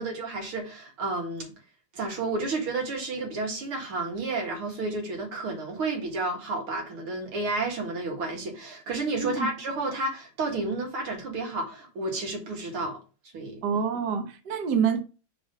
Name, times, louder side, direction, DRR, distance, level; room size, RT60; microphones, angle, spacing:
voice 1, 0.0-1.5 1.9-13.0 13.3-13.6, right 2 dB, 90° right, 2.7 m, -31 dB
voice 2, 13.6-15.0, right 7 dB, 60° right, 1.5 m, -26 dB
5.3 x 4.8 x 5.4 m
omnidirectional pair, 2.3 m